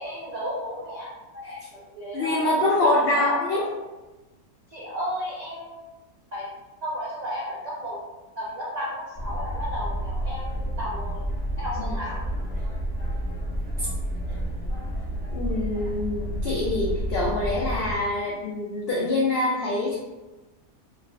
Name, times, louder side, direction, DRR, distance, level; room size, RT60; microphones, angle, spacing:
voice 1, 0.0-3.7 4.7-5.9 6.3-6.5 6.8-8.0 8.4-11.2 11.6-12.2, equal, 75° right, -7 dB, 0.3 m, -33 dB
voice 2, 2.1-3.6 11.8-12.0 13.8-13.9 15.3-20.0, left 2 dB, 75° left, -5 dB, 0.5 m, -25 dB
sound 1, 9.1-17.9, equal, 25° right, 0.6 m, -30 dB
2.5 x 2.4 x 3.2 m, 1.1 s
omnidirectional pair, 1.6 m